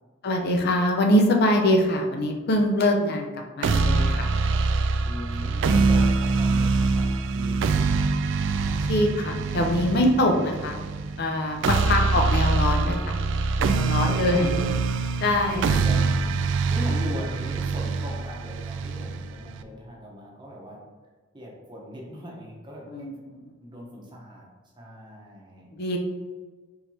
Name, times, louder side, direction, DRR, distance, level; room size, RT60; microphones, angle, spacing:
voice 1, 0.2-4.4 8.9-10.8 11.2-13.2 13.6-14.5 15.2-15.6 22.9-23.5 25.7-26.0, left 1 dB, 55° left, 3 dB, 0.5 m, -23 dB
sound 1, 3.6-19.6, right 4 dB, 65° right, 0.3 m, -24 dB
voice 2, 5.0-8.0 11.6-12.4 13.9-14.7 15.2-20.8 21.3-23.1 23.6-24.5 24.8-25.7, equal, 25° right, -3 dB, 0.9 m, -39 dB
4.5 x 3.3 x 2.8 m, 1.4 s
head